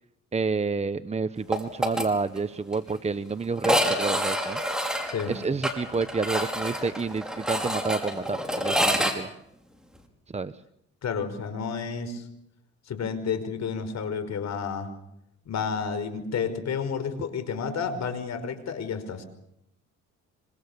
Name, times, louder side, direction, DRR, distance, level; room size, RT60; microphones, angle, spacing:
voice 1, 0.3-4.6 5.3-9.3 10.3-10.5, right 4 dB, 20° right, 12 dB, 0.9 m, -29 dB
sound 1, 1.5-2.1 2.4-2.5 2.7-2.8 3.6-9.1, equal, ahead, 5.5 m, -27 dB
voice 2, 11.0-12.3 12.9-14.9 15.5-19.3, left 6 dB, 60° left, 9 dB, 5.3 m, -31 dB
26.0 x 26.0 x 6.9 m, 0.77 s
cardioid pair, 90°, 30 cm